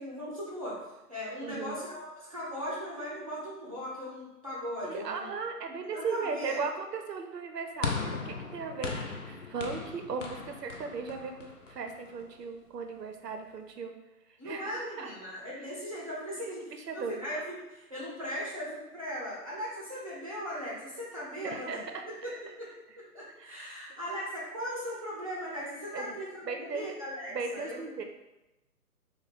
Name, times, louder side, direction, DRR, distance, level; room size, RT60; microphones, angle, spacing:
voice 1, 0.0-5.3 5.9-6.6 14.4-21.8 22.2-22.3 22.6-22.7 23.0-27.8, equal, 25° right, -7 dB, 0.5 m, -38 dB
voice 2, 1.4-1.8 4.8-14.0 14.3-15.1 16.7-17.2 21.4-22.0 23.4-23.8 25.9-26.1 26.4-26.9 27.3-28.0, right 5 dB, 85° right, 5 dB, 0.7 m, -37 dB
sound 1, 7.8-12.3, left 5 dB, 55° left, 0.5 m, -38 dB
3.0 x 2.1 x 4.0 m, 0.98 s
hypercardioid pair, 160°, 47 cm